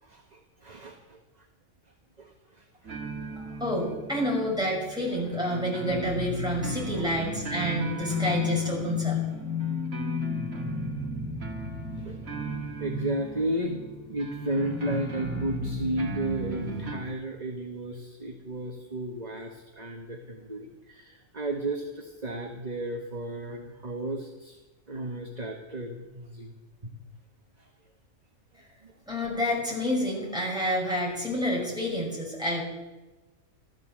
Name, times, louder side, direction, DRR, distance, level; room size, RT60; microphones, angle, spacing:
voice 1, 0.0-1.5 2.2-3.0 7.0-7.2 11.9-12.5 12.8-13.7 14.1-24.6 24.9-26.9 27.6-27.7 28.8-28.9, right 1 dB, 30° right, 2 dB, 1.5 m, -34 dB
sound 1, 2.9-17.0, left 2 dB, 75° right, 2.6 m, -33 dB
voice 2, 3.4-9.2 29.1-32.6, equal, 5° right, -4 dB, 6.1 m, -29 dB
14.0 x 13.5 x 7.6 m, 1.1 s
omnidirectional pair, 1.4 m